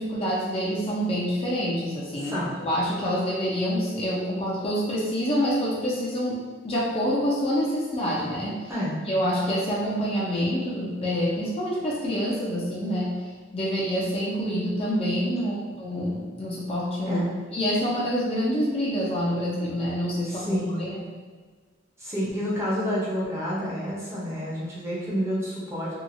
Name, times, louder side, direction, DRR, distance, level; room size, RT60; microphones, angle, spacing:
voice 1, 0.0-6.4 6.6-8.7 9.1-13.1 13.5-17.2 17.5-21.0, equal, 30° left, -5 dB, 0.5 m, -27 dB
voice 2, 2.2-2.5 8.7-9.0 15.4-15.6 17.0-17.3 20.3-20.8 22.0-25.9, equal, 15° right, -7 dB, 0.6 m, -29 dB
2.8 x 2.3 x 2.5 m, 1.4 s
head